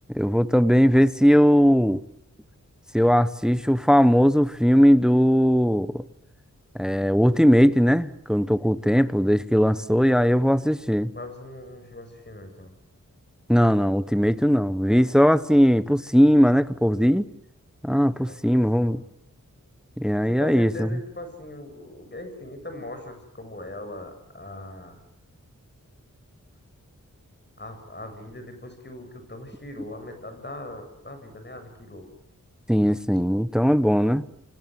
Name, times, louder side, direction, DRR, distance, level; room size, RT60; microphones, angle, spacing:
voice 1, 0.1-2.0 2.9-6.0 6.8-11.1 13.5-17.3 17.8-19.0 20.0-20.9 32.7-34.2, equal, ahead, 1.0 m, -19 dB
voice 2, 10.1-10.6 11.1-12.7 18.3-19.1 20.3-25.0 27.6-32.1, left 1 dB, 35° left, 7.5 m, -40 dB
28.5 x 25.0 x 7.9 m
wide cardioid pair, 95°, 31 cm